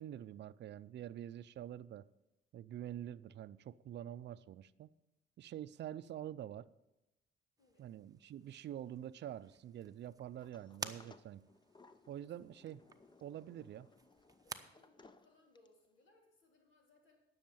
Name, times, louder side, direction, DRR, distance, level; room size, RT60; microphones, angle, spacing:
voice 1, 0.0-2.1 2.5-4.9 5.4-6.7 7.8-11.5 12.1-12.8 13.2-13.9, right 11 dB, 60° right, 17 dB, 0.5 m, -46 dB
voice 2, 7.6-7.9 12.3-12.4 14.4-17.2, left 2 dB, 75° left, 1 dB, 3.5 m, -69 dB
sound 1, 7.6-14.6, right 4 dB, 20° right, 0.8 m, -53 dB
Sliding door, 10.4-15.9, left 3 dB, 25° left, 0.7 m, -63 dB
10.5 x 6.5 x 8.6 m, 0.96 s
cardioid pair, 90°, 20 cm